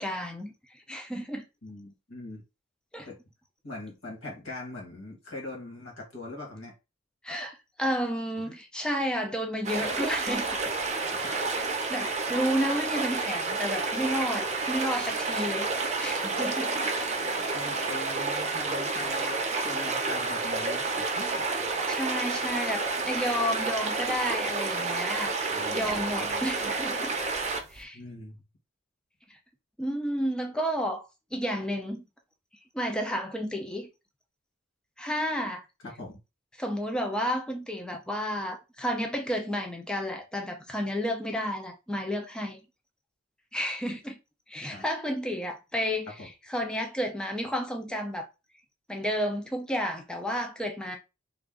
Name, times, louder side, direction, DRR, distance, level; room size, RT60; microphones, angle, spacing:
voice 1, 0.0-1.5 2.9-3.1 7.2-10.5 11.1-11.4 11.7-16.7 21.9-25.4 25.7-27.1 27.7-28.0 29.3-29.4 29.8-32.0 32.7-33.9 35.0-35.7 36.6-42.6 43.5-44.2 44.5-48.3 48.9-51.0, equal, 5° left, 0.5 m, -31 dB
voice 2, 1.6-2.4 3.1-3.2 3.6-6.7 8.4-8.6 11.2-11.5 17.5-21.4 25.5-26.5 27.9-28.3 35.8-36.2 44.7-44.8 46.2-46.3, left 2 dB, 90° left, 1.9 m, -42 dB
sound 1, 9.6-27.8, right 3 dB, 35° right, 0.7 m, -30 dB
3.4 x 2.5 x 3.7 m
head